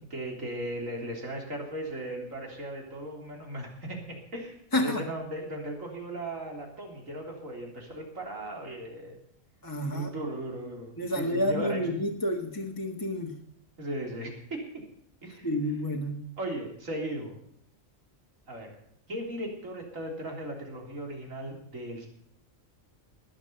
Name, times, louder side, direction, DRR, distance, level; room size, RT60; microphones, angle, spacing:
voice 1, 0.1-9.2 9.9-11.8 13.8-14.8 15.2-15.5 16.4-17.4 18.5-18.7 19.1-22.1, right 1 dB, 80° right, 0 dB, 3.9 m, -37 dB
voice 2, 4.7-5.0 9.6-10.1 11.0-13.4 15.4-16.2, left 1 dB, 15° left, 1 dB, 1.4 m, -29 dB
20.0 x 7.3 x 6.8 m, 0.70 s
omnidirectional pair, 1.3 m